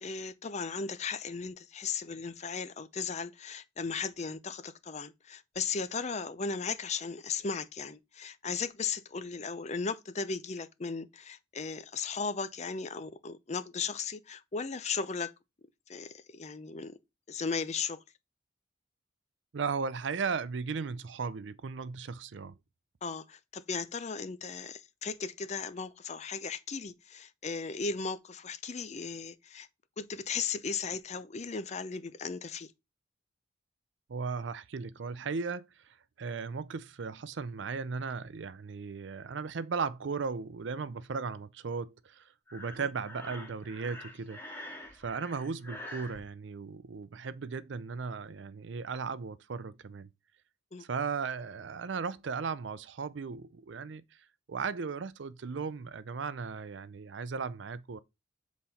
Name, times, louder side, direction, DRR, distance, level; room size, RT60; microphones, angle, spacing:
voice 1, 0.0-15.3 15.9-17.0 17.3-18.0 23.0-29.7 30.0-32.7 42.8-42.9 50.7-50.9, left 5 dB, 35° left, 0.6 m, -36 dB
voice 2, 19.5-22.6 34.1-44.4 44.9-50.1 50.8-54.2 54.5-58.0, right 5 dB, 75° right, 0.5 m, -36 dB
Breathing, 42.5-46.2, left 1 dB, 10° left, 2.0 m, -46 dB
7.6 x 4.1 x 4.2 m
head